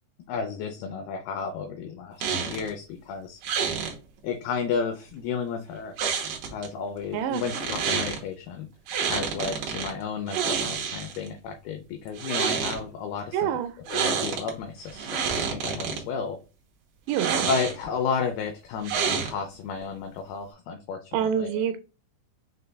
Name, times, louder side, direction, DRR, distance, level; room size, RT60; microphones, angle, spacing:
voice 1, 0.3-3.4 4.2-6.0 6.5-8.7 9.1-13.5 13.9-16.4 17.5-21.6, left 6 dB, 80° left, 5 dB, 2.4 m, -32 dB
sound 1, 2.2-2.7 3.4-3.9 6.0-6.7 7.3-8.2 8.9-9.9 10.3-11.3 12.1-12.8 13.9-14.5 14.9-16.0 17.1-17.9 18.8-19.6, right 6 dB, 70° right, 2.1 m, -28 dB
voice 2, 13.3-13.8 17.1-17.5 21.1-21.8, right 9 dB, 85° right, 8 dB, 2.8 m, -26 dB
6.6 x 3.2 x 2.2 m, 0.32 s
omnidirectional pair, 4.9 m